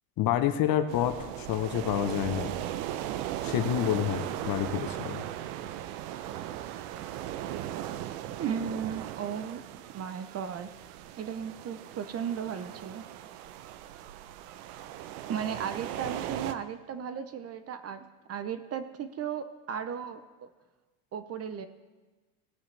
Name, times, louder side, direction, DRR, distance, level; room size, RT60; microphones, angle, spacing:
voice 1, 0.2-2.5 3.4-5.2, left 11 dB, 50° left, 8 dB, 0.9 m, -28 dB
sound 1, 0.9-16.5, right 12 dB, 80° right, 0.7 m, -38 dB
voice 2, 8.4-9.6 9.9-10.7 11.2-13.0 15.3-20.5 21.1-21.7, right 7 dB, 30° right, 11 dB, 0.7 m, -35 dB
17.5 x 8.9 x 3.3 m, 1.2 s
supercardioid pair, 115°, 46 cm